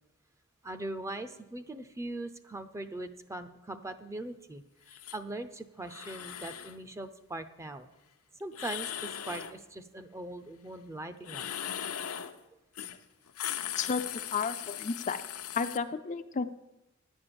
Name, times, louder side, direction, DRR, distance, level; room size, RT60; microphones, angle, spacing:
voice 1, 0.6-7.9 8.4-11.4, right 2 dB, 15° right, 9 dB, 0.5 m, -41 dB
sound 1, 4.9-5.2 5.8-6.8 8.5-9.6 11.2-12.4 12.8-13.0 13.3-15.8, left 10 dB, 85° left, 0.7 m, -39 dB
voice 2, 13.8-15.2 15.6-16.5, left 5 dB, 35° left, 9 dB, 0.4 m, -32 dB
10.5 x 8.9 x 6.9 m, 0.96 s
head